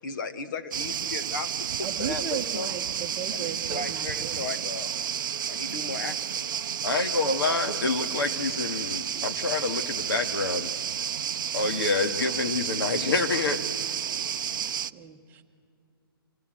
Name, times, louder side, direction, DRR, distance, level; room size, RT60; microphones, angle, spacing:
voice 1, 0.0-1.5 1.8-2.7 3.3-4.9 5.4-6.7, left 4 dB, 55° left, 10 dB, 1.3 m, -36 dB
sound 1, 0.7-14.9, right 9 dB, 55° right, 0.5 m, -31 dB
voice 2, 1.8-4.6 14.6-15.5, right 8 dB, 15° right, 4 dB, 1.2 m, -37 dB
voice 3, 6.8-10.7 11.5-13.6, left 3 dB, 70° left, 7 dB, 1.9 m, -27 dB
25.5 x 18.0 x 7.8 m, 2.5 s
hypercardioid pair, 150°, 13 cm